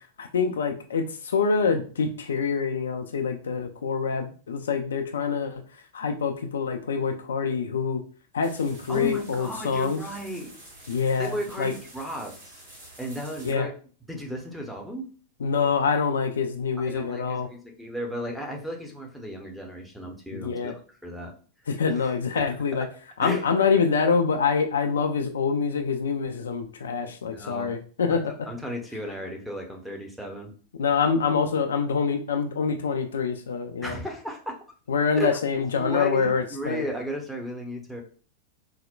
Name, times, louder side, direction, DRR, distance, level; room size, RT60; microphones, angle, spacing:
voice 1, 0.2-5.6 5.9-8.0 8.3-10.0 10.9-11.7 13.4-13.7 15.4-17.5 20.3-20.7 21.7-22.9 23.2-28.3 30.8-34.0 34.9-36.8, left 5 dB, 65° left, 5 dB, 0.3 m, -25 dB
sound 1, 8.4-13.5, right 1 dB, 65° right, 1.4 m, -48 dB
voice 2, 8.9-10.5 11.2-12.6 13.0-13.7 14.1-15.1 16.8-21.3 22.0-22.1 22.5-22.6 23.2-23.4 27.3-27.7 28.1-28.2 28.5-30.5 33.8-34.6 35.1-35.4 35.8-38.0, equal, ahead, -1 dB, 0.7 m, -35 dB
4.0 x 2.1 x 2.2 m, 0.40 s
figure-of-eight pair, 90°, 0 cm